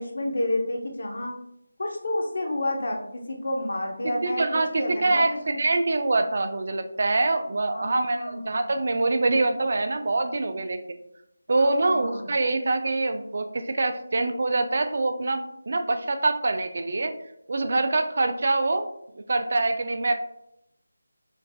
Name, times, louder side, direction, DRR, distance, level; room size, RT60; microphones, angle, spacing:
voice 1, 0.0-1.4 1.8-5.6 7.7-8.7 11.6-12.3, left 1 dB, 65° left, 2 dB, 0.8 m, -30 dB
voice 2, 4.2-10.8 11.5-17.1 17.5-20.1, right 2 dB, 55° right, 7 dB, 0.4 m, -25 dB
4.5 x 2.6 x 2.2 m, 0.78 s
figure-of-eight pair, 170°, 0 cm